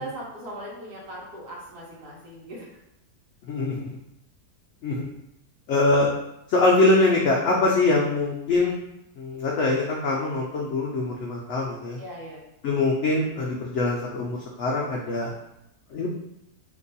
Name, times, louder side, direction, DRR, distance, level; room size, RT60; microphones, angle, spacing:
voice 1, 0.0-2.7 12.0-12.4, right 1 dB, 75° right, -4 dB, 1.3 m, -39 dB
voice 2, 3.5-3.9 4.8-5.1 5.7-6.1 6.5-8.8 9.2-12.0 12.6-15.3 15.9-16.2, left 2 dB, 75° left, -2 dB, 0.6 m, -23 dB
2.9 x 2.3 x 3.9 m, 0.84 s
omnidirectional pair, 1.7 m